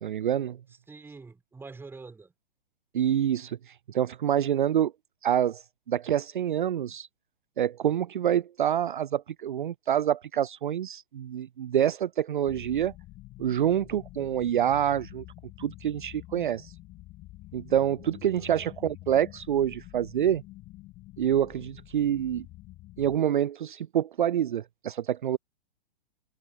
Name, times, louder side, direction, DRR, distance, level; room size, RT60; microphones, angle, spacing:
voice 1, 0.0-0.6 2.9-4.9 5.2-7.1 7.6-12.9 13.4-15.2 15.6-16.7 17.5-20.4 21.2-22.5 23.0-25.4, right 10 dB, 55° right, 0.7 m, -27 dB
voice 2, 0.9-2.3 18.4-18.7, right 4 dB, 5° right, 5.3 m, -46 dB
sound 1, 12.5-23.2, left 18 dB, 25° left, 3.8 m, -48 dB
figure-of-eight pair, 115°, 31 cm